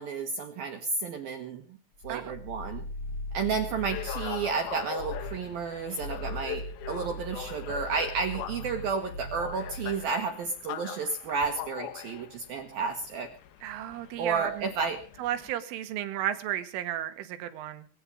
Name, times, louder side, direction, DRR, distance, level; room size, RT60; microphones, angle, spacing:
voice 1, 0.0-1.6 2.0-2.8 3.3-13.3 14.2-15.0, right 5 dB, 60° right, 4 dB, 2.8 m, -32 dB
sound 1, 1.9-4.6 4.9-5.5 5.9-10.1, equal, 40° left, 2.0 m, -40 dB
sound 2, 3.6-15.5, left 10 dB, 70° left, 2.6 m, -41 dB
voice 2, 13.6-14.7 15.2-17.9, right 11 dB, 85° right, 10 dB, 4.1 m, -33 dB
23.0 x 10.0 x 5.0 m, 0.41 s
omnidirectional pair, 5.6 m